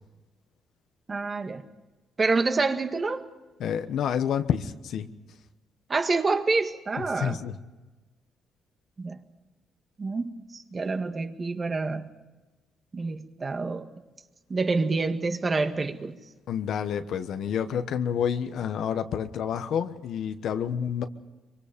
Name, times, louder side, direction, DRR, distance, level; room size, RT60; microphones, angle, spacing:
voice 1, 1.1-1.6 2.2-3.2 5.9-7.4 9.0-9.2 10.0-12.1 12.9-13.9 14.5-16.2, right 3 dB, 35° right, 1.8 m, -27 dB
voice 2, 3.6-5.1 7.0-7.6 16.5-21.0, left 8 dB, 75° left, 1.2 m, -29 dB
24.5 x 23.5 x 5.2 m
cardioid pair, 90°, 0 cm